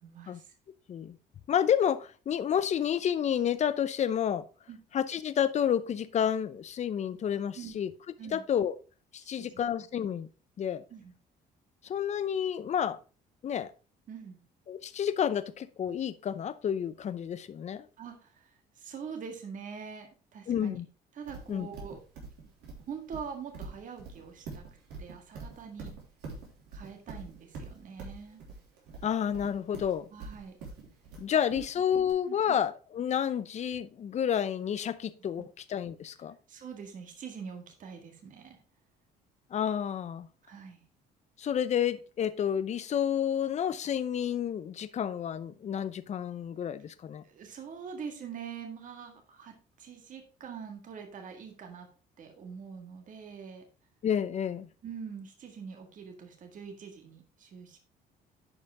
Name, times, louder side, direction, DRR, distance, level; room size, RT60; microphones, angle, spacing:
voice 1, 0.0-0.5 4.7-4.8 7.5-7.8 8.2-8.4 9.3-9.6 10.9-11.1 14.1-14.4 18.0-20.8 21.1-22.0 22.9-24.6 25.0-25.9 26.7-28.4 30.1-30.6 31.3-31.6 32.0-32.6 35.4-35.5 36.5-38.6 40.4-40.8 47.2-51.9 52.2-53.6 54.8-57.8, right 6 dB, 50° right, 1.8 m, -44 dB
voice 2, 1.5-4.4 4.9-7.9 8.3-8.7 9.1-10.3 10.6-10.8 11.8-13.0 13.4-13.7 14.7-17.9 20.5-20.8 21.5-21.7 29.0-30.1 31.2-36.3 39.5-40.3 41.4-47.2 54.0-54.7, left 9 dB, 40° left, 0.7 m, -30 dB
Livestock farm animals working animals, 21.3-32.1, right 4 dB, 85° right, 3.8 m, -44 dB
10.5 x 5.0 x 3.6 m
cardioid pair, 110°, 17 cm